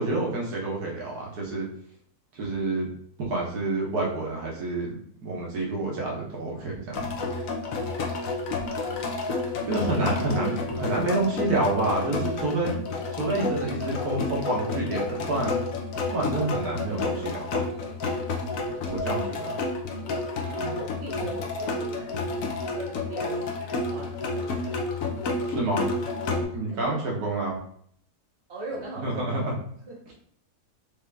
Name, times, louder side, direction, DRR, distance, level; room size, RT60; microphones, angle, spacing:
voice 1, 0.0-1.7 2.3-2.9 3.2-7.1 9.1-9.2 9.7-12.7 13.1-15.6 16.1-17.6 18.6-19.6 20.6-20.7 25.5-25.8 26.3-27.6 29.0-29.5, right 2 dB, 70° right, -2 dB, 1.7 m, -28 dB
sound 1, 6.9-26.4, left 3 dB, 65° left, 1.1 m, -30 dB
voice 2, 10.4-10.9 18.5-18.8 20.4-22.3 22.7-24.8 26.3-27.0 28.5-29.4 29.8-30.0, right 2 dB, 45° right, -1 dB, 1.4 m, -41 dB
5.1 x 2.9 x 3.4 m, 0.63 s
omnidirectional pair, 1.7 m